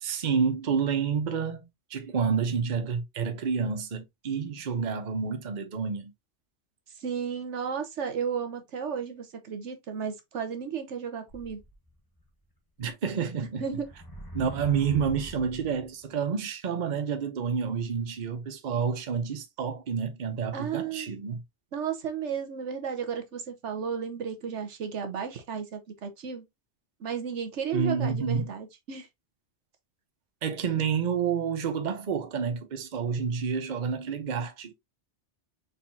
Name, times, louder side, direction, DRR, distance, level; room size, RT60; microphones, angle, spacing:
voice 1, 0.0-6.1 12.8-13.6 14.3-21.4 27.7-28.5 30.4-34.7, right 6 dB, 45° right, 0.8 m, -29 dB
voice 2, 7.0-11.6 13.6-13.9 20.5-21.1 21.7-26.4 27.0-29.1, right 7 dB, 85° right, 1.3 m, -33 dB
sound 1, 11.3-12.2 12.8-12.9 13.5-16.0, equal, 20° left, 1.0 m, -43 dB
4.3 x 3.9 x 2.6 m
omnidirectional pair, 1.2 m